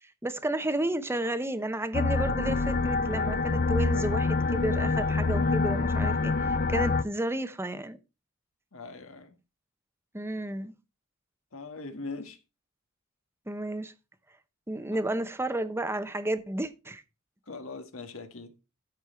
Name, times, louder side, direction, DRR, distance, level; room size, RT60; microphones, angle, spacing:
voice 1, 0.0-8.0 10.1-10.7 13.5-13.9 14.7-17.0, right 1 dB, 10° right, 0.8 m, -32 dB
sound 1, 1.9-7.0, left 3 dB, 45° left, 0.6 m, -26 dB
voice 2, 8.7-9.4 11.5-12.4 14.9-15.0 17.5-18.6, left 3 dB, 70° left, 1.6 m, -41 dB
13.0 x 5.5 x 4.3 m
head